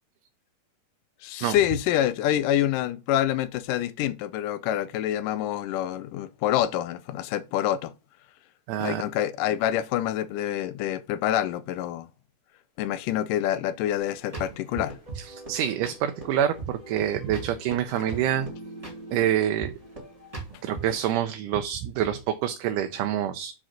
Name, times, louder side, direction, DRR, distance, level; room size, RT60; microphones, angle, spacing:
voice 1, 1.2-7.9 8.8-12.1 12.8-15.0 18.0-18.2, left 12 dB, 85° left, 2.2 m, -27 dB
voice 2, 8.7-9.0 15.2-18.5 19.1-19.7 20.6-23.5, right 10 dB, 80° right, 2.2 m, -26 dB
sound 1, 14.0-21.0, right 3 dB, 10° right, 2.1 m, -40 dB
6.1 x 5.0 x 5.7 m
omnidirectional pair, 3.7 m